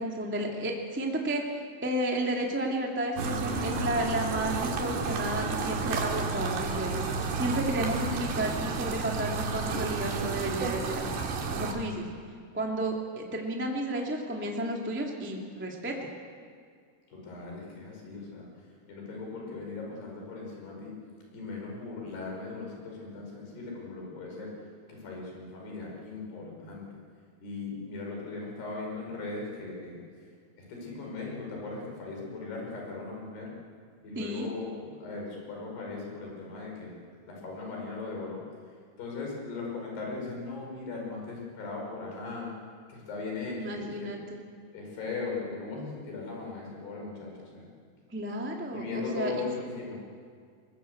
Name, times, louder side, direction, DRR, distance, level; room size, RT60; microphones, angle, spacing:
voice 1, 0.0-1.4 1.8-11.1 11.5-12.0 12.5-15.9 34.1-34.5 43.6-44.4 48.1-49.4, right 1 dB, 5° right, 0 dB, 1.3 m, -32 dB
sound 1, 3.2-11.7, right 4 dB, 90° right, 4.3 m, -31 dB
voice 2, 17.1-18.5 18.9-20.9 21.3-24.5 24.9-26.9 27.4-30.0 30.5-33.5 34.0-37.0 37.3-38.4 39.0-42.5 42.9-44.1 44.7-47.7 48.7-50.0, left 3 dB, 75° left, -1 dB, 7.3 m, -38 dB
22.0 x 21.5 x 7.9 m, 2.1 s
omnidirectional pair, 4.7 m